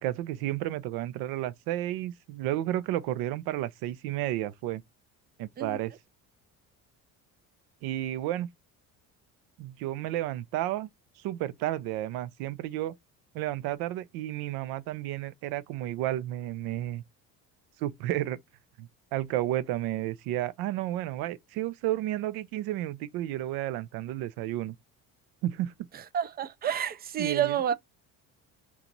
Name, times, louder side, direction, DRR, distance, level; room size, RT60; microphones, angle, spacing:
voice 1, 0.0-4.8 5.4-5.9 7.8-8.5 9.6-10.9 11.2-12.9 13.3-17.0 17.8-18.4 18.8-24.7 25.4-25.7 27.2-27.6, right 14 dB, 85° right, 0.5 m, -32 dB
voice 2, 25.9-27.8, right 9 dB, 30° right, 0.4 m, -29 dB
2.9 x 2.4 x 3.9 m
cardioid pair, 110°, 36 cm